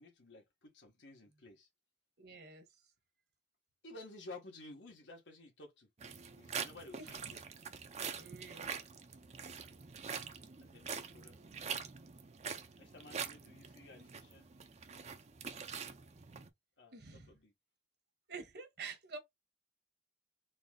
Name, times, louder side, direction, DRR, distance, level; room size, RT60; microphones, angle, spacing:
voice 1, 0.0-1.7 3.8-5.9 6.4-7.4 10.6-11.6 12.8-14.5 16.8-17.5, left 2 dB, 80° left, 1.4 m, -54 dB
voice 2, 2.2-2.7 7.0-7.3 8.2-8.7 16.9-17.4 18.3-19.2, right 5 dB, 60° right, 1.2 m, -48 dB
sound 1, 6.0-16.5, right 6 dB, 40° right, 0.5 m, -45 dB
4.1 x 2.0 x 3.7 m
head